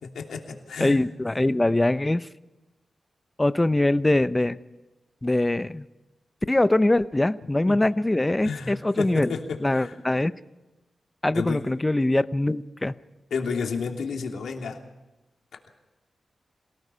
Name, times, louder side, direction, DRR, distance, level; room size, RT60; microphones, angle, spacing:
voice 1, 0.0-1.0 7.7-7.8 8.4-9.9 11.3-11.6 13.3-14.8, left 5 dB, 90° left, 2 dB, 2.9 m, -31 dB
voice 2, 0.8-2.3 3.4-4.6 5.2-5.9 6.5-9.3 9.6-10.3 11.2-12.9, left 1 dB, 15° left, 14 dB, 0.7 m, -23 dB
26.5 x 18.5 x 5.7 m, 1.0 s
wide cardioid pair, 90°, 0 cm